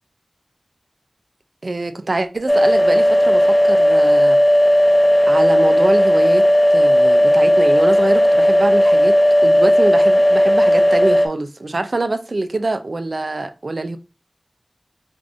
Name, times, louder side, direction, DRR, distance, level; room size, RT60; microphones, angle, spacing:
voice 1, 1.6-4.4 5.3-9.2 9.4-14.0, right 2 dB, 80° right, 0.4 m, -24 dB
sound 1, 2.5-11.3, equal, 30° left, 0.5 m, -14 dB
4.7 x 2.6 x 2.5 m
wide cardioid pair, 50°, 0 cm